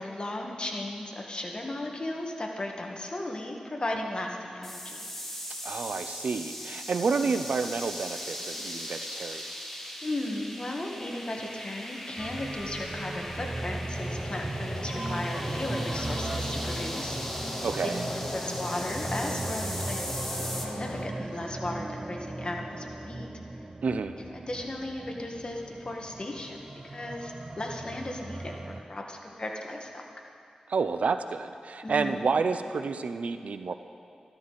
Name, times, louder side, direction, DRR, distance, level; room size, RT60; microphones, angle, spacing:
voice 1, 0.0-5.0 10.0-17.2 17.5-17.9 18.3-23.3 24.2-26.6 26.8-28.5 28.9-30.0 31.8-32.2, left 1 dB, 40° left, 1 dB, 1.6 m, -36 dB
sound 1, 4.6-20.7, equal, 10° left, 1.6 m, -39 dB
voice 2, 5.6-9.5 17.6-18.0 23.8-24.2 30.7-33.7, right 4 dB, 80° right, 10 dB, 0.5 m, -29 dB
sound 2, 12.2-28.8, right 2 dB, 35° right, 0.6 m, -37 dB
sound 3, 13.9-21.1, left 3 dB, 60° left, 0.6 m, -40 dB
13.0 x 12.5 x 4.1 m, 2.4 s
cardioid pair, 60°, 2 cm